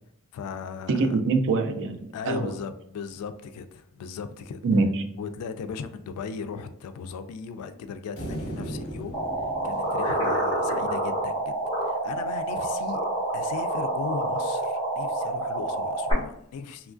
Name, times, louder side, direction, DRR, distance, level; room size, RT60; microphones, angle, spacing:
voice 1, 0.3-1.2 2.1-4.6 5.2-9.2 9.6-11.5 11.8-13.1 13.3-16.9, left 5 dB, 85° left, 12 dB, 0.3 m, -37 dB
voice 2, 0.9-2.5 4.6-5.0, right 3 dB, 60° right, 6 dB, 0.4 m, -24 dB
sound 1, 8.2-11.5, right 1 dB, 65° left, 0.8 m, -38 dB
sound 2, 9.1-16.1, right 1 dB, 20° left, 1.0 m, -28 dB
3.0 x 2.3 x 2.4 m, 0.74 s
head